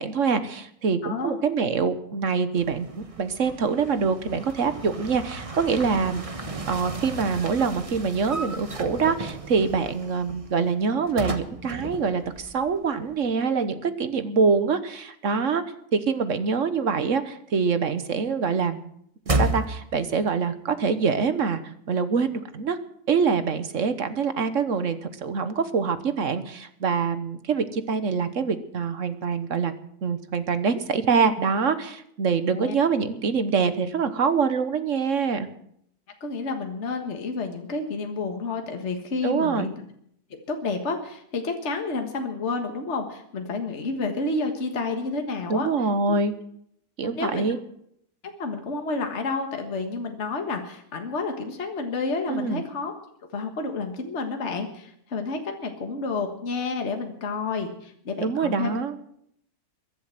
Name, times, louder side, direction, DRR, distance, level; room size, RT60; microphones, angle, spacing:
voice 1, 0.0-6.2 6.7-15.6 15.9-18.8 19.3-22.8 23.1-29.7 30.0-35.5 39.2-39.7 45.5-46.3 47.0-47.6 52.3-52.6 58.2-59.0, right 5 dB, 55° right, 11 dB, 1.4 m, -25 dB
voice 2, 1.0-1.4 32.5-32.7 36.2-39.7 40.3-45.7 46.1-46.2 47.0-47.4 48.2-52.9 53.3-58.7, left 3 dB, 50° left, 4 dB, 1.8 m, -30 dB
sound 1, 2.5-12.9 13.1-13.2 19.3-20.1, right 2 dB, 25° right, 1.2 m, -33 dB
22.5 x 7.7 x 7.6 m, 0.70 s
omnidirectional pair, 1.6 m